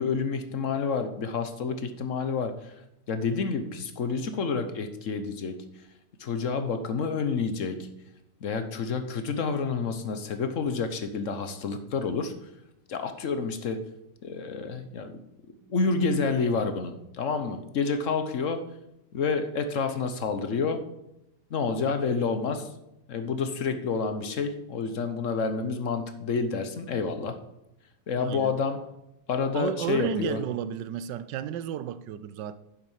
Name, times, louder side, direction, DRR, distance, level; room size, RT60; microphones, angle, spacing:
voice 1, 0.0-5.9 6.2-7.9 8.4-12.5 12.9-13.8 14.2-15.2 15.7-18.6 19.1-20.8 21.5-22.7 23.1-27.4 28.1-28.9 29.3-30.4, left 5 dB, 55° left, 1.1 m, -29 dB
voice 2, 28.2-28.5 29.5-32.6, right 9 dB, 80° right, 1.3 m, -32 dB
9.9 x 7.8 x 5.5 m
omnidirectional pair, 1.9 m